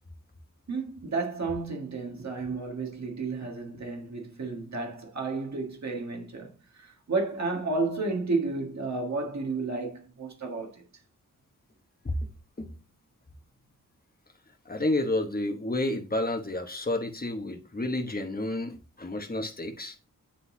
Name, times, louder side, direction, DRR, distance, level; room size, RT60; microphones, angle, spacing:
voice 1, 0.7-10.8, right 3 dB, 60° right, 1.7 m, -32 dB
voice 2, 14.6-20.0, left 2 dB, 30° left, 1.1 m, -30 dB
10.0 x 4.0 x 2.7 m
wide cardioid pair, 115°, 32 cm